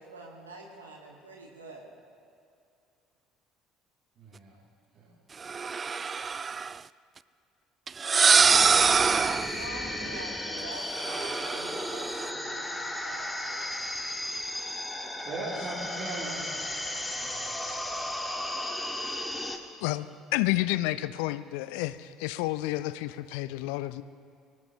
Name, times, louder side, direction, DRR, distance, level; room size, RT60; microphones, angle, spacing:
voice 1, 0.0-1.9 9.2-13.7, right 2 dB, 85° right, -1 dB, 2.1 m, -45 dB
voice 2, 4.2-4.5 4.9-5.0 15.2-16.6 17.1-17.4, right 3 dB, 50° right, -6 dB, 3.1 m, -39 dB
sound 1, 5.4-6.8 7.9-9.6 11.0-12.3, right 5 dB, 30° right, 0.3 m, -24 dB
sound 2, 8.4-19.6, left 1 dB, 10° left, 1.6 m, -35 dB
voice 3, 19.8-24.0, left 17 dB, 65° left, 15 dB, 0.5 m, -30 dB
24.5 x 18.0 x 3.1 m, 2.5 s
figure-of-eight pair, 55°, 0 cm